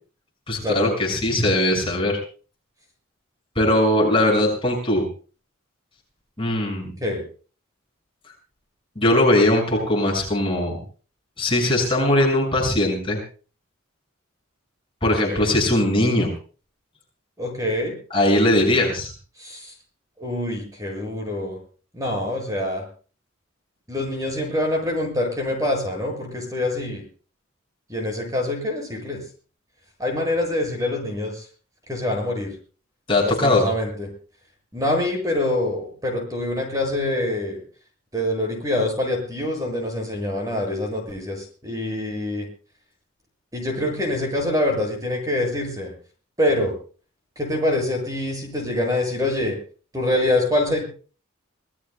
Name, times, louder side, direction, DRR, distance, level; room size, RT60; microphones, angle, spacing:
voice 1, 0.5-2.2 3.6-5.0 6.4-6.9 9.0-10.8 11.4-13.2 15.0-16.3 18.1-19.1 33.1-33.7, left 1 dB, 25° left, -1 dB, 6.2 m, -20 dB
voice 2, 15.2-15.5 17.4-17.9 19.4-19.7 20.2-21.6 21.9-22.8 23.9-27.0 27.9-29.2 30.0-31.4 31.9-32.5 33.2-34.1 34.7-37.6 38.1-42.5 43.5-45.9 46.4-46.7 47.4-49.6 49.9-50.8, left 1 dB, 15° right, 2 dB, 7.4 m, -25 dB
27.0 x 19.0 x 2.3 m, 0.39 s
head